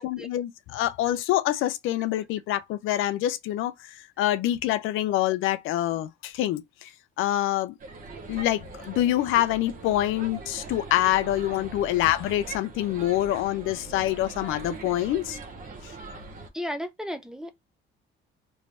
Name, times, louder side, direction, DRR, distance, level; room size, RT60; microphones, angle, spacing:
voice 1, 0.0-6.9 7.2-7.7 8.3-15.4, left 14 dB, 80° left, 0.5 m, -26 dB
sound 1, 7.8-16.5, right 4 dB, 40° right, 0.8 m, -41 dB
voice 2, 16.5-17.5, equal, 5° right, 0.4 m, -34 dB
3.1 x 2.6 x 3.3 m
cardioid pair, 120°, 21 cm